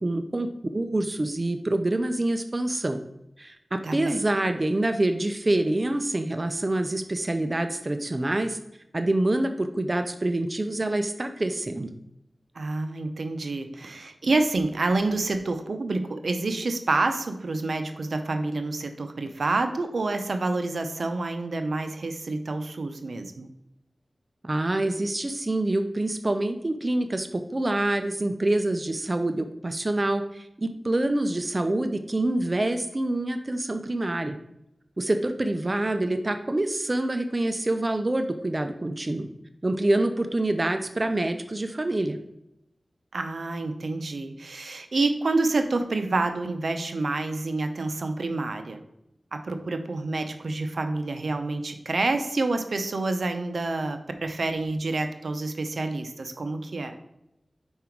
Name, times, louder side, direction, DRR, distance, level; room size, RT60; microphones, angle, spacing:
voice 1, 0.0-3.0 3.4-8.6 8.9-11.9 24.4-34.4 35.0-39.3 39.6-42.2, right 1 dB, 35° right, 7 dB, 0.5 m, -26 dB
voice 2, 3.8-4.2 12.6-23.5 43.1-48.8 49.3-56.9, right 3 dB, 80° right, 7 dB, 0.6 m, -28 dB
5.5 x 4.8 x 4.5 m, 0.84 s
wide cardioid pair, 65°, 0 cm